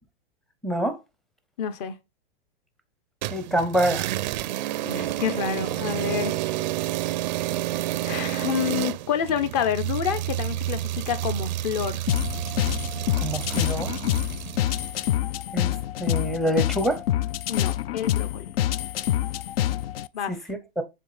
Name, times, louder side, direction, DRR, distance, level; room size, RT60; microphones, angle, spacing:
voice 1, 0.6-1.0 3.3-4.1 13.2-13.9 15.5-15.7 16.0-17.0 20.5-20.8, right 1 dB, ahead, 0.6 m, -25 dB
voice 2, 1.6-1.9 4.8-6.3 8.0-12.0 17.5-18.5 20.1-20.4, left 8 dB, 40° left, 1.1 m, -28 dB
sound 1, 3.2-15.0, right 15 dB, 50° right, 0.4 m, -30 dB
sound 2, 12.1-20.1, left 12 dB, 70° left, 0.5 m, -26 dB
7.4 x 3.6 x 4.1 m
hypercardioid pair, 145°, 30 cm